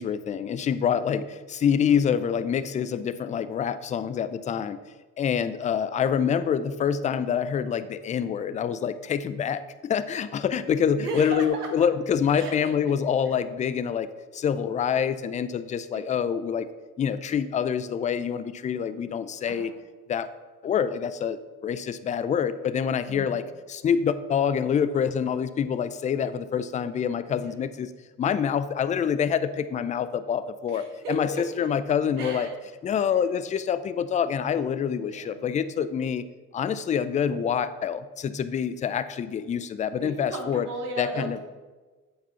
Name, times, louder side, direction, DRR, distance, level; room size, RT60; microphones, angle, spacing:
voice 1, 0.0-4.8 5.2-14.1 14.3-16.7 17.0-19.7 20.1-20.3 20.6-27.9 28.2-31.3 31.6-32.5 32.8-36.2 36.5-40.7 41.0-41.4, left 7 dB, 20° left, 13 dB, 0.3 m, -26 dB
voice 2, 10.9-11.9 12.4-12.7 13.3-13.4 19.5-19.7 23.1-23.4 27.4-27.5 30.7-31.7 32.2-32.6 35.1-35.4 40.0-41.4, right 2 dB, 85° right, 2 dB, 1.2 m, -35 dB
8.2 x 4.2 x 5.6 m, 1.3 s
hypercardioid pair, 65°, 45 cm